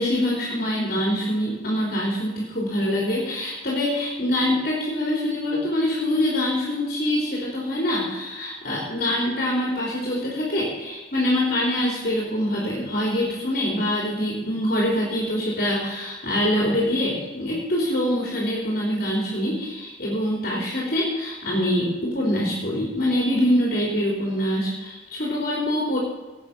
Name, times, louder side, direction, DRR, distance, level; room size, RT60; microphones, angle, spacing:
voice 1, 0.0-26.0, left 1 dB, 50° left, -3 dB, 3.7 m, -24 dB
19.0 x 8.5 x 6.0 m, 1.2 s
head